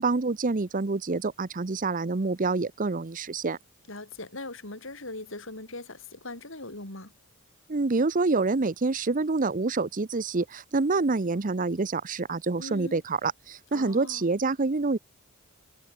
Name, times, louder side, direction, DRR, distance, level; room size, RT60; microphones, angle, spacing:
voice 1, 0.0-3.6 7.7-15.0, right 3 dB, 40° right, 0.7 m, -27 dB
voice 2, 3.9-7.1 12.6-13.0 13.7-14.2, left 2 dB, 65° left, 5.6 m, -40 dB
head